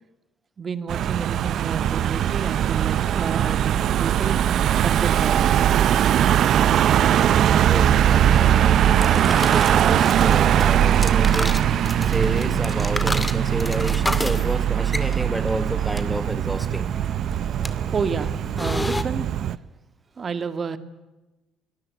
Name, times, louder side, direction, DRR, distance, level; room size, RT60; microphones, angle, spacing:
voice 1, 0.6-4.4 4.8-5.4 17.9-19.3 20.2-20.8, right 5 dB, 35° right, 12 dB, 1.9 m, -30 dB
Car passing by / Engine, 0.9-19.6, right 10 dB, 60° right, 0.8 m, -20 dB
voice 2, 7.6-11.6 12.0-16.9, right 1 dB, 10° right, 10 dB, 1.7 m, -30 dB
sound 1, 8.0-15.3, left 5 dB, 60° left, 5.0 m, -40 dB
sound 2, 8.8-19.0, left 1 dB, 10° left, 2.2 m, -32 dB
23.5 x 19.5 x 9.4 m, 1.0 s
cardioid pair, 95°, 0 cm